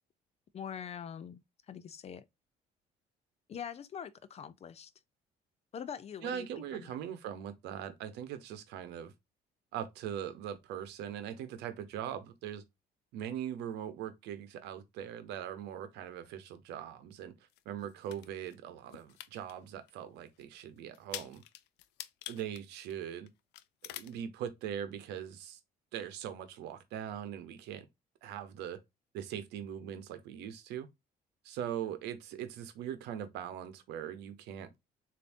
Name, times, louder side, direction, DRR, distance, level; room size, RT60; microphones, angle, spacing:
voice 1, 0.5-1.4 1.7-2.2 3.5-4.9 5.7-7.0, left 8 dB, 40° left, 0.5 m, -43 dB
voice 2, 6.2-9.1 9.7-12.6 13.1-17.3 17.6-21.4 22.3-23.3 23.9-25.6 25.9-27.9 28.2-28.8 29.1-30.9 31.4-34.7, right 9 dB, 85° right, 0.8 m, -41 dB
sound 1, 17.5-18.5 18.9-19.5 19.9-20.0 20.4-20.5 20.9-23.3 23.5-24.1, left 15 dB, 90° left, 0.4 m, -45 dB
6.9 x 2.7 x 2.6 m
cardioid pair, 110°, 17 cm